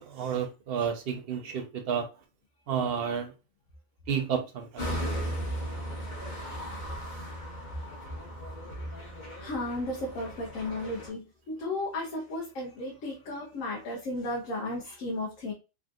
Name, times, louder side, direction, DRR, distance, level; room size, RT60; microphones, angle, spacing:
voice 1, 0.0-2.1 2.7-3.3 4.1-4.9, right 7 dB, 60° right, 0.7 m, -31 dB
sound 1, 4.8-11.1, equal, 40° left, 1.2 m, -37 dB
voice 2, 9.4-15.5, left 2 dB, 85° left, 1.1 m, -34 dB
3.4 x 2.5 x 2.2 m
omnidirectional pair, 1.3 m